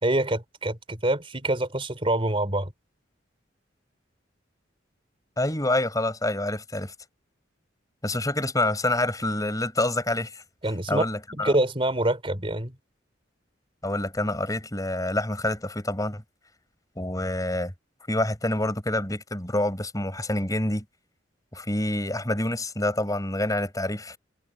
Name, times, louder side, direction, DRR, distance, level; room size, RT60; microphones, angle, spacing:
voice 1, 0.0-2.7 10.6-11.0 11.4-12.7, right 1 dB, 30° right, 4.2 m, -25 dB
voice 2, 5.4-6.9 8.0-10.4 10.9-11.6 13.8-16.2 17.0-17.7 18.1-20.8 21.5-24.2, left 1 dB, 20° left, 5.7 m, -27 dB
head